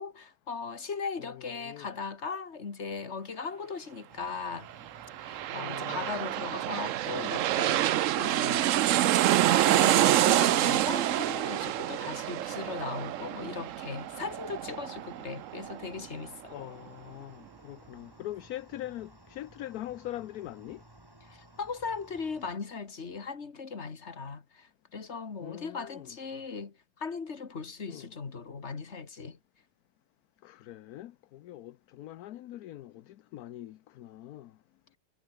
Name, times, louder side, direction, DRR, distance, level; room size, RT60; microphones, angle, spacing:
voice 1, 0.0-4.7 5.2-8.8 9.6-16.6 21.2-29.4, left 5 dB, 40° left, 2.2 m, -38 dB
voice 2, 1.3-2.0 5.5-6.2 16.5-20.8 25.4-26.2 27.9-28.1 30.4-34.5, left 13 dB, 70° left, 1.1 m, -43 dB
sound 1, 4.1-22.5, right 1 dB, 15° right, 2.7 m, -57 dB
sound 2, 4.9-16.2 16.6-16.7, right 13 dB, 65° right, 0.8 m, -27 dB
omnidirectional pair, 1.8 m